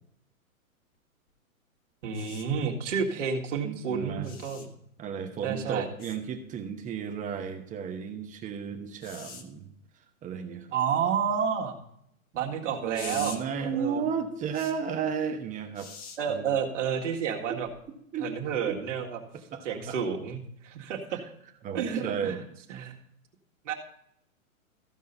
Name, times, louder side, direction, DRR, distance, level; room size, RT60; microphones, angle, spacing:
voice 1, 2.0-4.7 5.4-5.9 10.7-11.7 12.3-14.0 16.2-17.7 18.2-19.2 19.6-21.2 21.7-22.4 22.7-22.9 23.7-23.8, right 7 dB, 60° right, 1 dB, 2.0 m, -30 dB
sound 1, 2.1-2.5 4.2-4.7 6.0-6.2 9.0-9.4 12.9-13.4 14.5-14.7 15.8-16.2 17.7-17.8, left 5 dB, 20° left, 1.0 m, -43 dB
voice 2, 3.6-4.3 5.0-9.7 10.2-10.7 12.3-12.5 12.8-15.9 16.3-16.5 17.5-17.6 18.1-18.3 18.7-18.8 19.3-20.0 21.1-21.2 21.6-22.4, right 7 dB, 20° right, 6 dB, 1.0 m, -34 dB
14.5 x 5.5 x 5.4 m, 0.74 s
hypercardioid pair, 125°, 42 cm